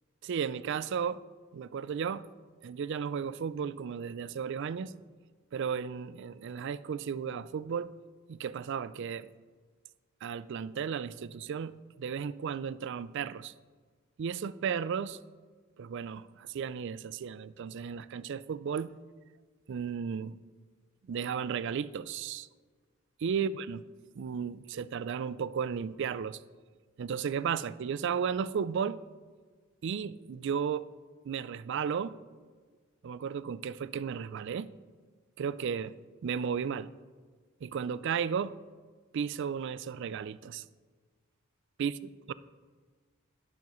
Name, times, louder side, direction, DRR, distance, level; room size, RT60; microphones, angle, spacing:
voice 1, 0.2-1.2 1.5-2.3 2.6-4.9 5.5-7.9 8.3-9.3 10.2-13.5 14.2-15.2 15.8-18.9 19.7-20.4 21.1-22.5 23.2-23.8 24.2-26.4 27.0-29.0 29.8-30.9 31.2-32.2 33.0-34.7 35.4-35.9 36.2-36.9 37.6-38.5 39.1-40.7 41.8-42.0 42.3-42.4, right 7 dB, 55° right, 16 dB, 0.3 m, -34 dB
19.0 x 7.1 x 3.1 m, 1.5 s
head